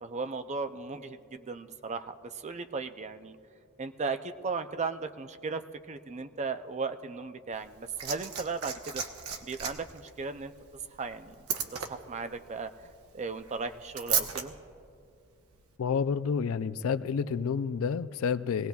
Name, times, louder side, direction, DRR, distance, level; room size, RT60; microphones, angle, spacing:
voice 1, 0.0-3.4 3.8-9.0 9.4-10.5 11.0-11.3 11.7-12.9 13.1-14.5, right 4 dB, 30° right, 9 dB, 0.5 m, -36 dB
Liquid, 7.5-14.4 15.5-15.6, right 7 dB, 80° right, 1.0 m, -36 dB
voice 2, 15.8-18.7, left 6 dB, 65° left, 13 dB, 0.4 m, -29 dB
23.0 x 17.5 x 2.3 m, 2.5 s
head